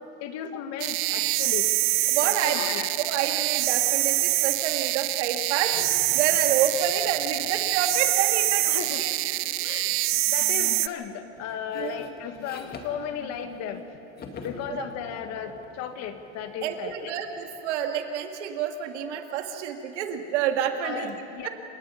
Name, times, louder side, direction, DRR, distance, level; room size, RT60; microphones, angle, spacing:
voice 1, 0.2-1.7 2.2-2.9 8.6-9.0 9.6-10.0 10.3-13.9 14.4-17.1 20.8-21.5, left 8 dB, 45° left, 7 dB, 1.9 m, -35 dB
sound 1, 0.8-10.9, right 19 dB, 40° right, 0.5 m, -25 dB
voice 2, 2.1-5.7 6.1-9.4 11.7-12.1 14.7-14.8 16.6-21.5, right 9 dB, 70° right, 5 dB, 2.2 m, -29 dB
sound 2, 5.7-9.0 9.9-10.3 10.6-13.8 14.2-17.7, left 4 dB, 25° left, 2.1 m, -47 dB
28.5 x 18.0 x 5.7 m, 2.8 s
supercardioid pair, 130°, 36 cm